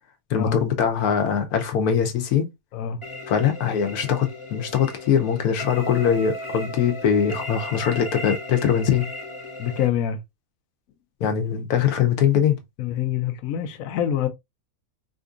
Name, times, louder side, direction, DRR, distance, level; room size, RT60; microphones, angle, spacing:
voice 1, 0.3-2.5 3.3-9.1 11.2-12.6, left 8 dB, 90° left, 1.2 m, -22 dB
sound 1, 3.0-9.9, left 1 dB, 30° left, 0.5 m, -36 dB
voice 2, 9.6-10.2 12.8-14.3, left 10 dB, 75° left, 1.0 m, -25 dB
4.3 x 2.6 x 2.4 m
omnidirectional pair, 1.5 m